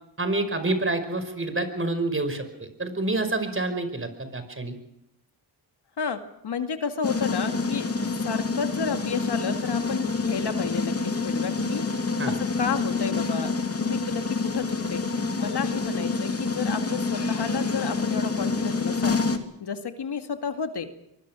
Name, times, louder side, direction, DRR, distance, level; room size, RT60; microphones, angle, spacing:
voice 1, 0.2-4.8 12.2-12.4, right 2 dB, 30° right, 9 dB, 5.2 m, -28 dB
voice 2, 6.0-7.9 8.2-11.8 12.2-13.5 13.8-15.0 15.4-19.2 19.6-20.9, left 6 dB, 70° left, 7 dB, 2.4 m, -31 dB
sound 1, 7.0-19.4, left 4 dB, 35° left, 2.8 m, -27 dB
24.0 x 22.0 x 6.3 m, 0.78 s
cardioid pair, 80°, 42 cm